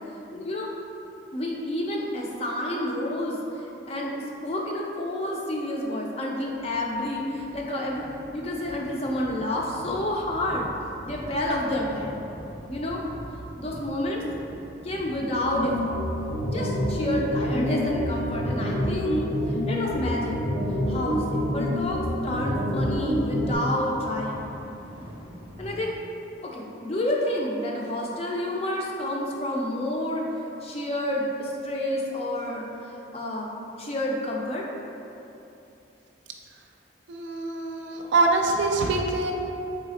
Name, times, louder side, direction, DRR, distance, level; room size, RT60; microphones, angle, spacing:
voice 1, 0.3-0.7 1.3-3.4 3.9-8.0 8.3-10.7 11.0-12.2 12.7-13.0 13.6-14.2 14.8-16.0 16.5-20.4 20.9-24.5 25.6-26.0 26.4-30.2 30.6-34.7, left 1 dB, 30° left, -2 dB, 0.5 m, -29 dB
sound 1, 6.4-25.9, equal, 25° right, 0.7 m, -43 dB
sound 2, 15.6-23.6, equal, 75° left, 1.3 m, -27 dB
voice 2, 37.1-39.3, right 3 dB, 75° right, 2 dB, 0.5 m, -24 dB
3.9 x 3.2 x 4.1 m, 2.9 s
head